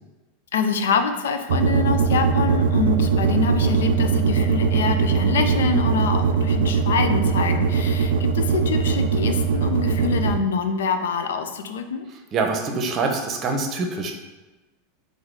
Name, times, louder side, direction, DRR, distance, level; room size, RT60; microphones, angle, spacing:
voice 1, 0.5-12.0, left 5 dB, 80° left, 7 dB, 0.4 m, -25 dB
sound 1, 1.5-10.4, right 5 dB, 80° right, 0.4 m, -20 dB
voice 2, 12.3-14.1, right 3 dB, 35° right, 4 dB, 0.8 m, -24 dB
3.9 x 2.6 x 4.6 m, 1.1 s
hypercardioid pair, 105°, 0 cm